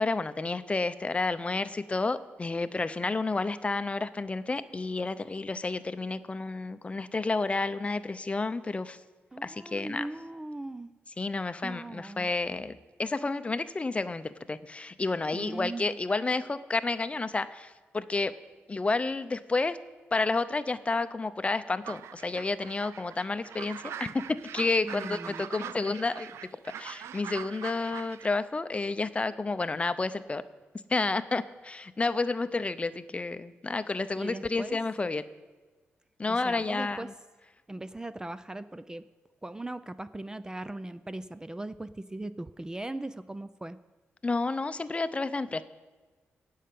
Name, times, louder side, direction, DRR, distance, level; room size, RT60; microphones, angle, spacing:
voice 1, 0.0-9.0 9.4-10.1 11.2-18.3 18.7-19.8 20.1-26.3 26.6-30.4 30.9-35.2 36.2-37.1 44.2-45.6, left 3 dB, 25° left, 13 dB, 0.6 m, -30 dB
voice 2, 9.3-10.9 11.6-12.3 15.3-16.0 24.8-25.5 34.2-34.8 36.3-37.1 37.7-39.0 39.4-43.8, right 2 dB, 15° right, 13 dB, 0.4 m, -39 dB
sound 1, 21.8-28.3, right 9 dB, 80° right, 0.3 m, -42 dB
16.0 x 5.7 x 8.4 m, 1.3 s
cardioid pair, 75°, 4 cm